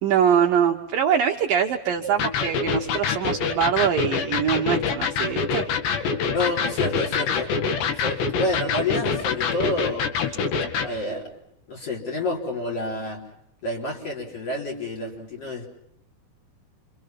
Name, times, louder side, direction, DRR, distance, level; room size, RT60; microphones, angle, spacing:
voice 1, 0.0-6.1, right 8 dB, 65° right, 2 dB, 2.5 m, -23 dB
Electric guitar, 2.2-10.9, left 5 dB, 75° left, 4.2 m, -25 dB
voice 2, 6.3-7.5 7.9-10.4 10.8-11.3 11.7-13.2 13.6-15.7, left 2 dB, 35° left, 0 dB, 4.8 m, -29 dB
29.0 x 26.0 x 5.9 m, 0.76 s
omnidirectional pair, 5.0 m